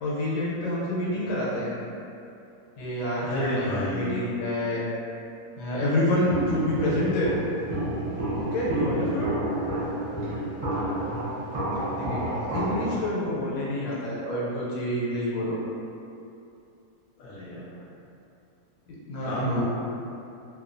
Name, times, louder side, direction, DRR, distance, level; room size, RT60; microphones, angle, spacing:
voice 1, 0.0-1.7 2.8-4.8 5.6-7.4 8.4-9.3 11.8-15.6 19.1-19.6, left 1 dB, 90° left, -6 dB, 1.3 m, -28 dB
voice 2, 3.2-4.1 8.9-9.2 11.1-11.2 17.2-17.7 19.2-19.6, left 1 dB, 70° left, -8 dB, 0.8 m, -31 dB
Walk footsteps, 6.3-13.0, right 1 dB, 85° right, 0.3 m, -29 dB
3.0 x 2.2 x 2.4 m, 2.7 s
omnidirectional pair, 1.8 m